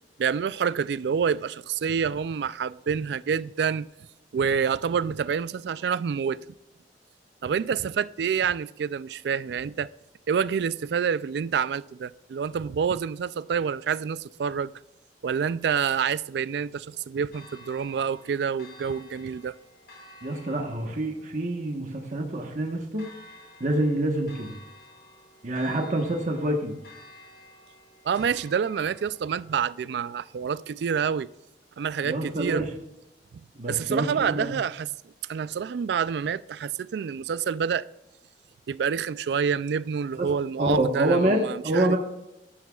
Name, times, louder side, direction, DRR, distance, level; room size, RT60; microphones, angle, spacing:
voice 1, 0.2-3.9 4.3-6.4 7.4-9.9 10.3-14.7 15.2-19.5 28.0-31.3 31.8-32.6 33.7-34.9 35.3-37.9 38.7-42.0, right 7 dB, 70° right, 0.3 m, -27 dB
Church bell, 17.3-31.3, left 1 dB, 65° left, 3.0 m, -52 dB
voice 2, 20.2-23.1 23.6-24.5 25.4-26.8 32.0-32.7 33.5-34.5 40.2-40.3 40.6-42.0, right 1 dB, 45° right, 1.2 m, -26 dB
13.5 x 11.0 x 2.4 m
head